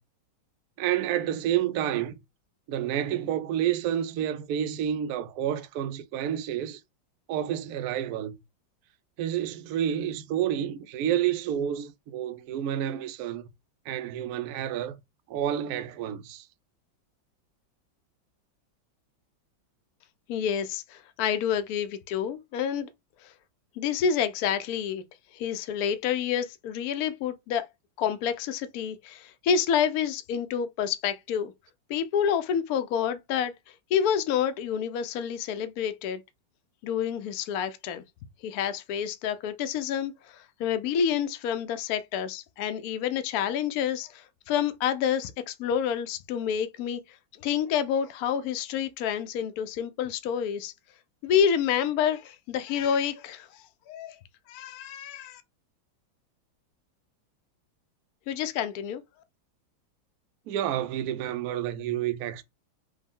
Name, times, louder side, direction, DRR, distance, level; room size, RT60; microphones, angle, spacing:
voice 1, 0.8-2.1 2.7-6.8 7.3-8.3 9.2-13.5 13.9-15.0 15.3-16.5 60.5-62.4, right 10 dB, 80° right, 0.8 m, -29 dB
voice 2, 20.3-22.9 23.2-23.3 23.8-25.0 25.3-27.6 28.0-31.5 31.9-36.2 36.8-38.0 38.4-47.2 47.4-50.7 51.2-54.2 54.5-55.4 58.3-59.0, left 8 dB, 75° left, 0.8 m, -28 dB
5.1 x 2.2 x 3.6 m
omnidirectional pair, 2.1 m